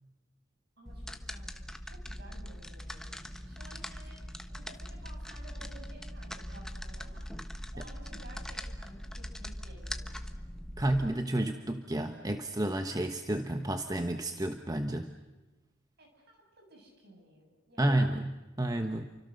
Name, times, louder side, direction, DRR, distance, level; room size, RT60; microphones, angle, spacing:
voice 1, 0.8-7.3 7.7-10.4 16.0-18.0, right 1 dB, 55° right, 2 dB, 7.6 m, -55 dB
sound 1, 0.9-11.1, equal, 5° left, 1.1 m, -41 dB
voice 2, 10.8-15.1 17.8-19.0, right 1 dB, 20° right, 6 dB, 1.1 m, -31 dB
30.0 x 25.0 x 6.6 m, 1.1 s
head